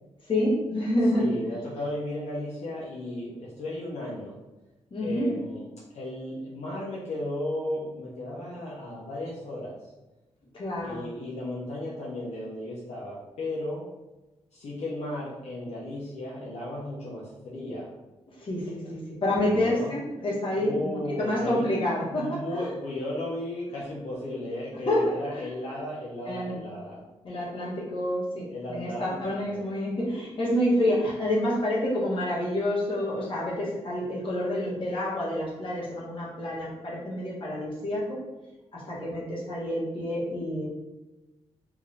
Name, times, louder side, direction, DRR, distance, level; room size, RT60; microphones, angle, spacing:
voice 1, 0.3-1.3 4.9-5.3 10.5-11.0 18.4-22.7 24.9-25.4 26.2-26.6 27.2-38.2 38.7-40.7, left 1 dB, 50° left, -6 dB, 1.4 m, -28 dB
voice 2, 1.2-4.3 5.0-5.7 5.9-9.8 10.8-13.9 14.5-17.9 19.4-19.9 20.5-21.7 22.1-27.0 28.5-29.6, left 1 dB, 80° left, -6 dB, 0.9 m, -35 dB
3.4 x 2.7 x 3.4 m, 1.1 s
cardioid pair, 105°, 11 cm